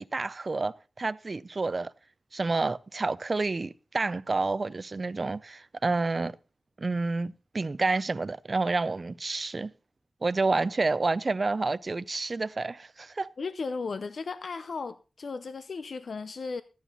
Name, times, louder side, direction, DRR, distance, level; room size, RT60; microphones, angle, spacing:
voice 1, 0.0-1.9 2.3-6.4 6.8-9.7 10.2-13.3, right 3 dB, 40° right, 0.5 m, -29 dB
voice 2, 13.4-16.6, left 4 dB, 70° left, 0.6 m, -35 dB
14.0 x 9.2 x 4.0 m
wide cardioid pair, 115°, 0 cm